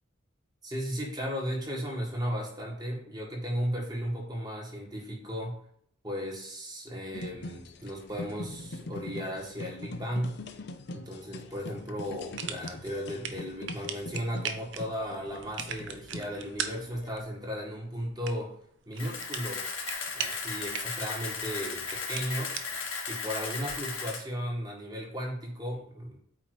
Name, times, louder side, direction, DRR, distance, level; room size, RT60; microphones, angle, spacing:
voice 1, 0.6-5.6 6.0-10.4 10.9-18.5 18.9-19.7 20.1-22.5 23.1-26.2, equal, 20° right, -1 dB, 1.8 m, -35 dB
sound 1, 7.1-17.2, left 2 dB, 55° left, 0.6 m, -43 dB
sound 2, 12.0-23.9, right 7 dB, 65° right, 0.7 m, -41 dB
Camera, 19.0-24.2, left 5 dB, 85° left, 1.6 m, -36 dB
8.5 x 2.9 x 4.9 m, 0.67 s
head